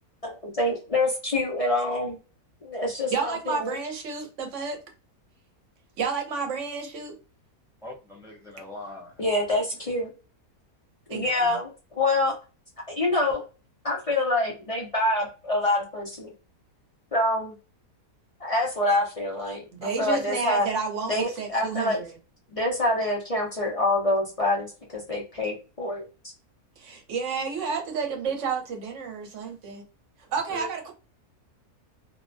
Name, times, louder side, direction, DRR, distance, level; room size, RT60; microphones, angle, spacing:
voice 1, 0.2-2.2 2.6-3.8 9.2-10.1 11.1-11.7 12.0-12.3 12.9-13.4 13.8-16.3 17.1-17.5 18.4-20.7 21.1-22.0 22.5-26.0, left 1 dB, 50° left, 0.4 m, -26 dB
voice 2, 3.1-4.8 6.0-7.2 11.1-11.6 19.7-22.1 26.8-29.8 30.3-30.9, right 5 dB, 60° right, 1.0 m, -31 dB
voice 3, 7.8-9.3 30.5-30.7, left 2 dB, 5° right, 0.7 m, -40 dB
2.7 x 2.1 x 2.5 m
omnidirectional pair, 1.6 m